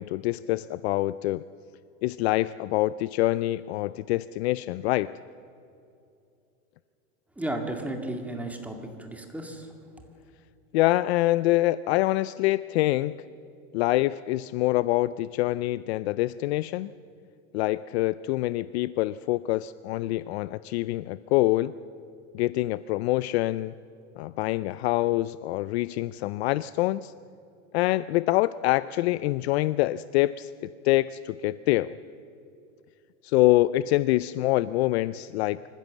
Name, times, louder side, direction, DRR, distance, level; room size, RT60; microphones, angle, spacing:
voice 1, 0.0-1.4 2.0-5.1 10.7-13.1 13.7-16.9 17.5-21.7 22.3-23.7 24.2-27.1 27.7-32.0 33.2-35.7, left 17 dB, 50° left, 17 dB, 0.4 m, -25 dB
voice 2, 7.4-9.7, right 1 dB, 5° right, 4 dB, 2.1 m, -34 dB
26.0 x 15.0 x 7.3 m, 2.6 s
supercardioid pair, 140°, 42 cm